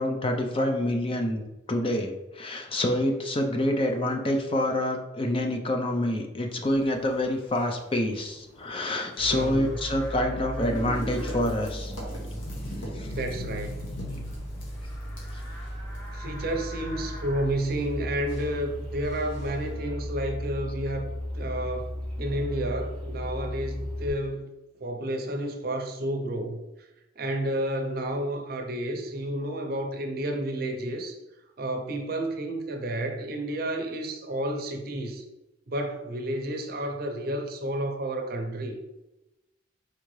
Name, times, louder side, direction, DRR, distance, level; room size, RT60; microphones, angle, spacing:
voice 1, 0.0-1.4 1.7-11.9 12.8-13.1, left 1 dB, 30° left, 3 dB, 0.5 m, -27 dB
sound 1, 6.5-19.7, equal, 80° left, 1.4 m, -43 dB
Livestock farm animals working animals, 9.2-24.1, equal, 5° left, 1.1 m, -36 dB
voice 2, 9.3-9.7 13.1-13.8 16.1-21.9 22.2-24.5 24.8-26.6 27.2-31.1 31.6-35.2 35.7-38.8, right 1 dB, 50° right, 4 dB, 0.6 m, -31 dB
4.5 x 3.7 x 3.2 m, 0.99 s
head